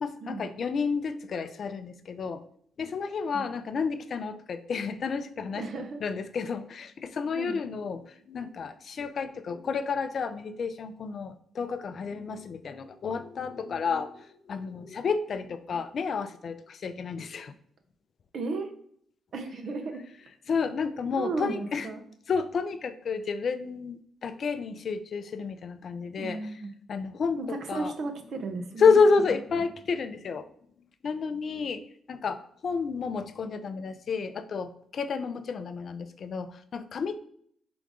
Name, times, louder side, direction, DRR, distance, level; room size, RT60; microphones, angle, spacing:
voice 1, 0.0-2.4 2.8-5.6 6.0-17.5 20.5-21.9 22.3-26.4 26.9-27.9 28.8-30.5 31.0-31.8 32.1-37.2, left 5 dB, 60° left, 11 dB, 0.4 m, -30 dB
voice 2, 5.5-6.0 7.4-7.6 18.3-18.7 19.3-20.0 21.2-22.0 26.2-26.7 27.4-29.0 29.5-29.7, right 3 dB, 65° right, 5 dB, 0.8 m, -34 dB
3.8 x 3.5 x 3.7 m, 0.64 s
supercardioid pair, 50°, 0 cm